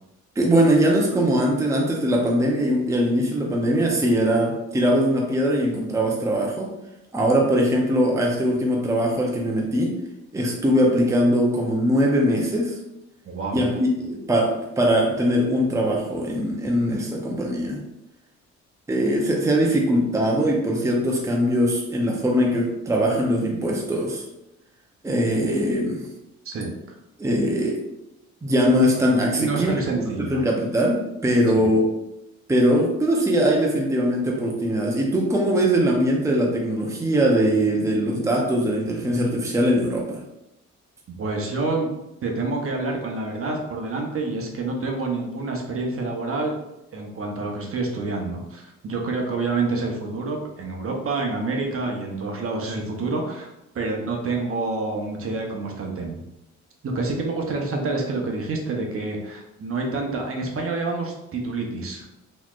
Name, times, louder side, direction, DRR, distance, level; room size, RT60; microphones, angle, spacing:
voice 1, 0.4-6.7 7.1-10.0 10.3-12.8 13.5-17.8 18.9-24.2 25.0-26.0 27.2-27.8 28.4-30.0 30.3-31.9 32.5-40.2, equal, 10° right, -1 dB, 0.7 m, -21 dB
voice 2, 13.2-13.7 26.4-27.0 29.4-30.4 31.6-31.7 41.1-41.9 42.2-46.6 46.9-56.2 56.8-62.1, right 3 dB, 45° right, 1 dB, 0.8 m, -28 dB
3.9 x 3.1 x 2.4 m, 0.89 s
cardioid pair, 90°, 30 cm